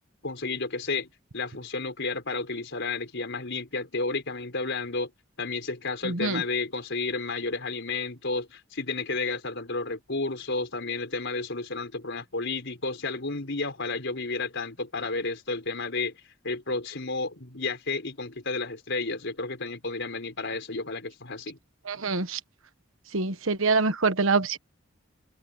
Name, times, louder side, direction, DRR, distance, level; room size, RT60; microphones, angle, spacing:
voice 1, 0.2-5.1 5.4-16.1 16.4-21.6, left 3 dB, 60° left, 5.0 m, -32 dB
voice 2, 6.0-6.4 21.9-22.4 23.1-24.6, right 4 dB, 70° right, 1.3 m, -25 dB
head